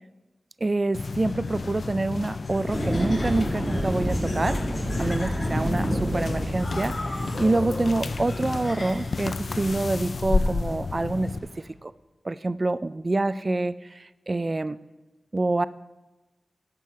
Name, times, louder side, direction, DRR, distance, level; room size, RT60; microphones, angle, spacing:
voice 1, 0.6-4.6 5.0-11.3 11.8-11.9 12.2-14.8 15.3-15.7, right 2 dB, 35° right, 16 dB, 0.3 m, -26 dB
sound 1, 0.9-11.4, left 4 dB, 65° left, 0.4 m, -31 dB
Laughter, 2.4-9.3, left 2 dB, 50° left, 2.7 m, -38 dB
sound 2, 2.7-11.6, equal, 20° right, 1.9 m, -31 dB
11.5 x 7.8 x 4.7 m, 1.1 s
wide cardioid pair, 80°, 0 cm